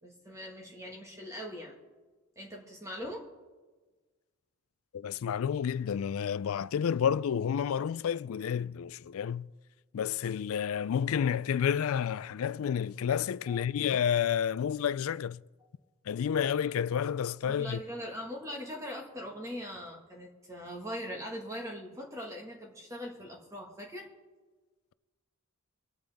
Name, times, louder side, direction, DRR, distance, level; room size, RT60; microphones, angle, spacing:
voice 1, 0.0-1.8 2.3-3.3 13.5-13.6 17.5-24.1, equal, 15° right, 1.7 m, -41 dB
voice 2, 4.9-9.5 9.9-15.4 16.1-17.8, left 8 dB, 75° left, 0.3 m, -30 dB
25.0 x 8.9 x 3.5 m
head